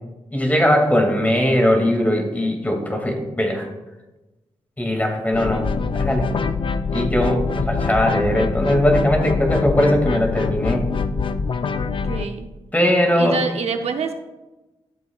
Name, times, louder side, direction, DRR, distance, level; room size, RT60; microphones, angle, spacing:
voice 1, 0.3-3.7 4.8-5.7 6.0-6.3 6.9-10.9 12.7-13.4, equal, 15° left, 2 dB, 2.3 m, -19 dB
sound 1, 5.3-12.2, left 5 dB, 50° left, 0.5 m, -24 dB
voice 2, 11.9-12.5 13.1-14.1, right 5 dB, 75° right, 6 dB, 0.7 m, -27 dB
12.5 x 7.2 x 2.4 m, 1.1 s
cardioid pair, 55°, 11 cm